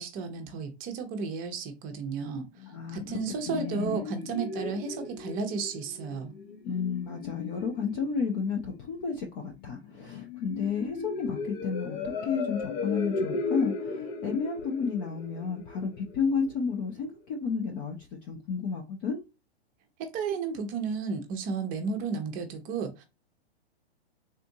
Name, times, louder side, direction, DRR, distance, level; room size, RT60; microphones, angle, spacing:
voice 1, 0.0-2.5 2.9-6.3 20.0-23.1, right 5 dB, 25° right, 0.7 m, -33 dB
sound 1, 2.6-16.5, left 4 dB, 45° left, 0.8 m, -37 dB
voice 2, 2.7-3.0 3.5-4.0 6.6-18.0 18.3-19.2, left 5 dB, 20° left, 0.3 m, -32 dB
3.6 x 2.6 x 2.6 m
hypercardioid pair, 130°, 32 cm